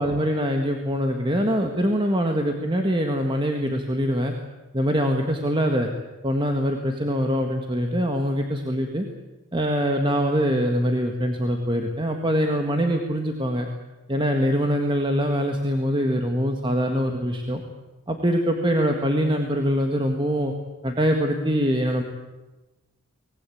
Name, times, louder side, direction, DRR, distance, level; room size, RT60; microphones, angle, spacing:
voice 1, 0.0-4.3 4.7-5.9 6.2-9.1 9.5-13.7 14.1-17.6 18.1-20.5 20.8-22.0, equal, 20° right, 3 dB, 1.7 m, -23 dB
24.5 x 19.5 x 8.6 m, 1.1 s
head